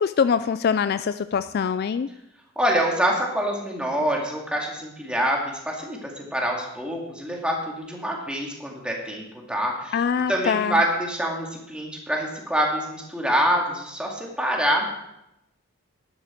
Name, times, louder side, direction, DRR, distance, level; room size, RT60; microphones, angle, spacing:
voice 1, 0.0-2.1 9.9-10.8, left 6 dB, 45° left, 13 dB, 0.3 m, -23 dB
voice 2, 2.6-10.0 10.3-14.9, equal, 5° right, -1 dB, 2.2 m, -26 dB
12.0 x 11.0 x 4.5 m, 0.85 s
head